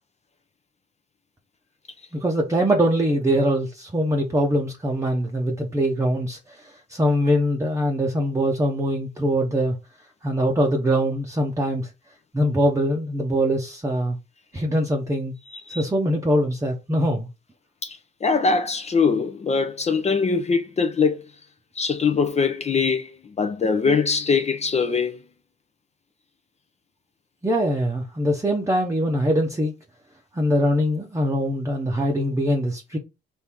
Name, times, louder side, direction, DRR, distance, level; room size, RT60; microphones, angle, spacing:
voice 1, 2.1-9.8 10.2-11.9 12.3-14.2 14.5-15.3 15.7-17.3 27.4-29.7 30.3-33.0, equal, 15° right, 0.8 m, -23 dB
voice 2, 15.5-15.8 17.8-21.2 21.8-25.2, left 5 dB, 35° left, 0.6 m, -22 dB
4.4 x 2.7 x 3.5 m
cardioid pair, 90°, 20 cm